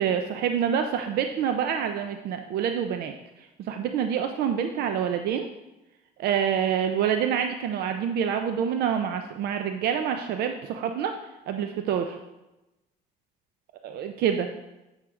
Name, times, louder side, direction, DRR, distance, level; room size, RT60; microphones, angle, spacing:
voice 1, 0.0-3.1 3.4-5.5 6.2-11.2 11.5-12.2 13.8-14.5, right 8 dB, 70° right, 6 dB, 0.6 m, -27 dB
8.8 x 6.5 x 3.7 m, 1.0 s
cardioid pair, 110°, 17 cm